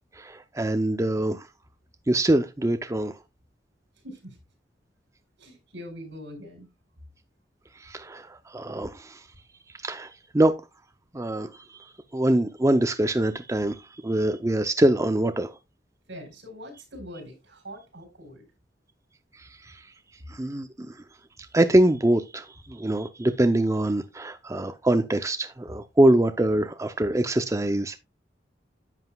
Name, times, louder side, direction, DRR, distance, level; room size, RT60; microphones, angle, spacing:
voice 1, 0.2-1.5 2.1-3.1 7.8-9.2 9.8-10.6 11.1-11.5 12.1-15.5 20.3-20.9 21.5-28.0, right 1 dB, 15° right, 0.5 m, -24 dB
voice 2, 4.0-4.4 5.4-6.7 16.1-18.4, equal, 85° right, 4.2 m, -42 dB
10.5 x 7.8 x 2.3 m
head